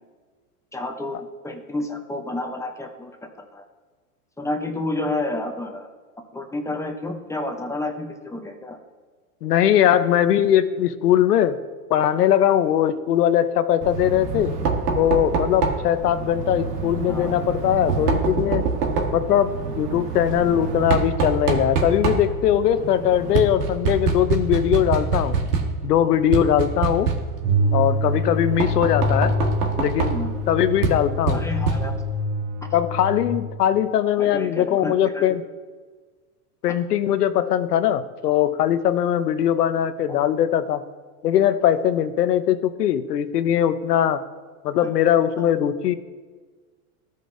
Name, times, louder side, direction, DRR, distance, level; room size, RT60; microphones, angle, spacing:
voice 1, 0.7-3.1 3.4-3.6 4.4-5.9 6.3-8.8 17.1-17.3 30.1-30.4 31.3-31.9 34.2-35.2 40.1-40.2 44.8-44.9 45.4-45.5, left 2 dB, 5° left, 4 dB, 0.6 m, -30 dB
voice 2, 9.4-11.6 11.9-14.5 15.0-18.6 19.1-25.4 25.8-27.1 27.7-29.3 29.8-30.2 30.5-31.4 32.7-35.4 36.6-40.8 41.2-44.2 44.6-45.9, left 10 dB, 90° left, 12 dB, 0.7 m, -20 dB
Knock, 13.8-32.2, right 4 dB, 85° right, 1.4 m, -26 dB
sound 1, 27.4-33.4, equal, 60° right, 1.5 m, -25 dB
14.5 x 5.3 x 2.6 m, 1.5 s
hypercardioid pair, 120°, 46 cm